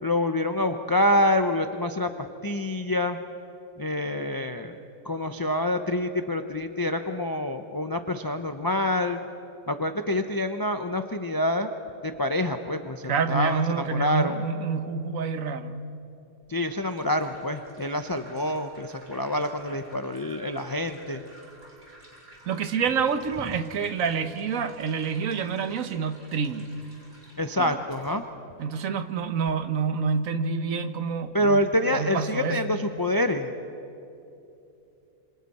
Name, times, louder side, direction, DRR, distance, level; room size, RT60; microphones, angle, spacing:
voice 1, 0.0-3.2 3.8-4.8 5.0-9.2 9.7-11.7 12.0-14.4 16.5-21.2 27.4-28.2 31.3-33.5, left 1 dB, 30° left, 7 dB, 0.4 m, -26 dB
voice 2, 13.1-15.8 22.5-26.7 27.6-27.8 28.6-31.6 31.9-32.6, right 6 dB, 65° right, 9 dB, 1.3 m, -28 dB
sound 1, 16.4-28.1, right 1 dB, 30° right, 4.7 m, -53 dB
27.0 x 26.0 x 4.2 m, 2.8 s
omnidirectional pair, 1.6 m